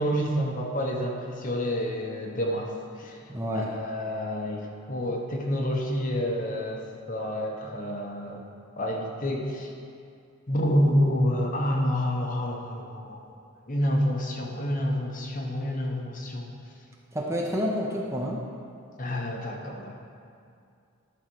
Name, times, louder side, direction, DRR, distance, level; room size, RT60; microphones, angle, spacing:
voice 1, 0.0-2.7 3.0-3.2 3.5-8.4 8.8-9.7 10.5-13.2 13.7-16.5 19.0-19.9, equal, 35° left, 1 dB, 0.9 m, -28 dB
voice 2, 3.3-3.7 17.1-18.5, equal, 15° right, -2 dB, 0.7 m, -29 dB
11.5 x 4.4 x 6.1 m, 2.4 s
head